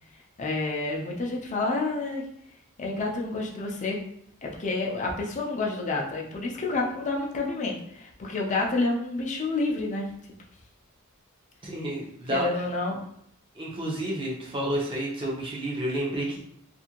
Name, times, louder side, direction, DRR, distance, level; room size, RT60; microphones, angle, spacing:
voice 1, 0.4-2.2 2.8-4.0 4.4-10.1 12.3-13.0, left 3 dB, 35° left, -1 dB, 0.5 m, -29 dB
voice 2, 11.6-12.5 13.5-16.4, right 1 dB, 25° right, -4 dB, 0.7 m, -30 dB
2.6 x 2.5 x 2.9 m, 0.73 s
head